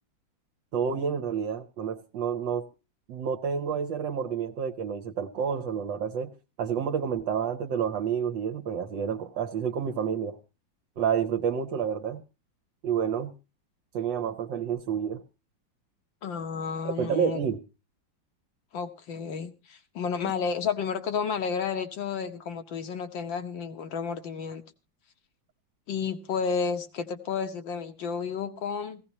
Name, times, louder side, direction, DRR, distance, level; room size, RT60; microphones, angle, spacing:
voice 1, 0.7-2.6 3.1-6.3 6.6-10.4 11.0-12.2 12.8-13.3 13.9-15.2 16.8-17.6, right 7 dB, 70° right, 1.6 m, -29 dB
voice 2, 16.2-17.4 18.7-24.6 25.9-29.0, left 6 dB, 75° left, 1.8 m, -31 dB
17.0 x 16.0 x 2.8 m
omnidirectional pair, 2.1 m